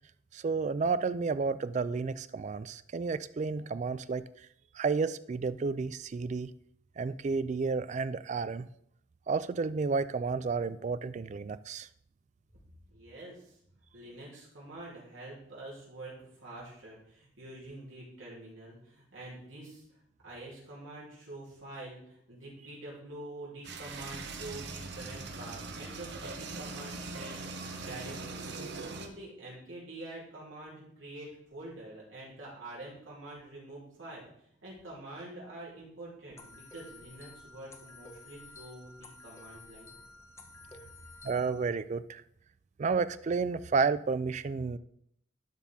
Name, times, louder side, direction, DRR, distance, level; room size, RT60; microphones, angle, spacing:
voice 1, 0.3-4.2 4.7-6.5 7.0-8.7 9.3-11.9 41.2-42.2 42.8-44.8, right 4 dB, 35° right, 15 dB, 0.3 m, -31 dB
voice 2, 12.9-13.6 13.9-19.8 20.2-28.5 28.9-34.3 34.6-39.9, right 2 dB, 80° right, -6 dB, 3.6 m, -46 dB
sound 1, 23.6-29.1, right 3 dB, 60° right, 0.9 m, -41 dB
sound 2, 36.4-41.7, left 3 dB, 15° left, 0.7 m, -52 dB
11.5 x 5.6 x 3.6 m, 0.71 s
head